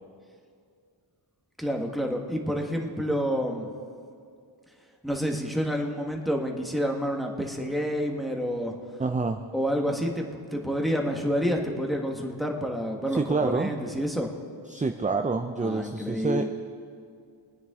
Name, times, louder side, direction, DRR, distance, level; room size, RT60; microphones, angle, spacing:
voice 1, 1.6-3.7 5.0-8.7 9.5-14.3 15.6-16.5, equal, ahead, 1 dB, 1.3 m, -28 dB
voice 2, 9.0-9.4 13.1-13.7 14.7-16.5, right 4 dB, 15° right, 6 dB, 0.4 m, -27 dB
21.5 x 9.6 x 3.6 m, 2.3 s
wide cardioid pair, 80°, 47 cm